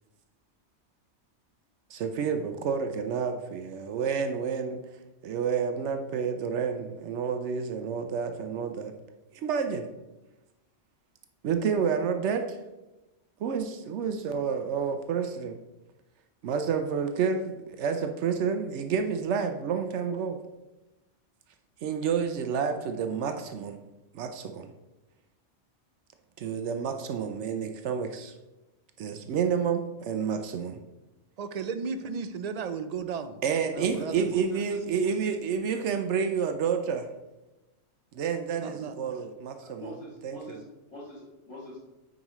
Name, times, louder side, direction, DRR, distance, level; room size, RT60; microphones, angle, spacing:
voice 1, 1.9-4.8 5.2-8.9 9.4-9.9 11.4-12.6 13.4-15.6 16.4-20.4 21.8-23.8 24.1-24.7 26.4-28.3 29.0-30.8 33.4-37.1 38.1-39.9 40.2-40.6, right 6 dB, 85° right, 7 dB, 0.9 m, -29 dB
voice 2, 31.4-33.4 33.7-34.3 38.6-38.9, right 6 dB, 60° right, 9 dB, 0.4 m, -34 dB
voice 3, 33.7-34.6 39.6-40.6 40.9-41.8, equal, 85° left, -12 dB, 2.5 m, -43 dB
9.3 x 4.9 x 3.0 m, 1.0 s
omnidirectional pair, 1.2 m